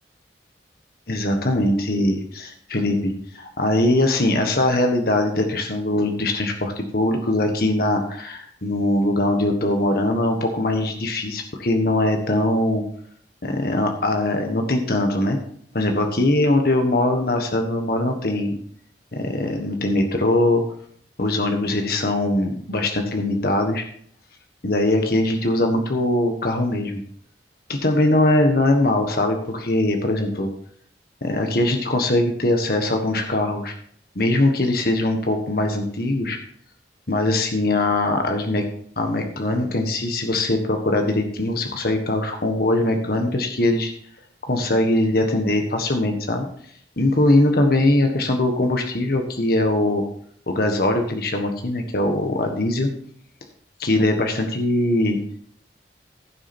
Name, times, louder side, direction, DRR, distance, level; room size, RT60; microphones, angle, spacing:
voice 1, 1.1-12.8 13.4-15.4 15.7-18.6 19.1-20.6 21.2-23.9 24.6-27.0 27.7-30.5 31.2-33.7 34.1-36.4 37.1-38.6 39.0-43.9 44.5-46.5 47.0-50.0 50.5-52.9 53.8-55.2, left 1 dB, 60° left, 4 dB, 1.4 m, -21 dB
15.5 x 6.4 x 4.4 m, 0.63 s
head